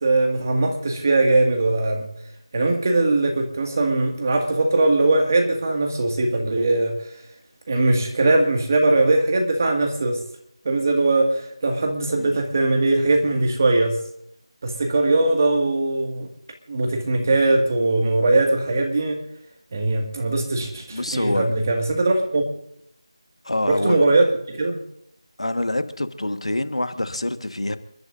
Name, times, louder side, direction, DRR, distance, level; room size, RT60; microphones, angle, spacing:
voice 1, 0.0-2.1 2.5-7.0 7.7-10.2 10.7-14.0 14.6-16.3 16.7-19.2 19.7-22.4 23.7-24.3 24.5-24.8, right 2 dB, 30° right, 3 dB, 2.0 m, -20 dB
voice 2, 20.9-21.5 23.4-24.0 25.4-27.8, left 1 dB, 85° left, 9 dB, 1.5 m, -26 dB
29.0 x 12.0 x 2.6 m, 0.74 s
figure-of-eight pair, 170°, 3 cm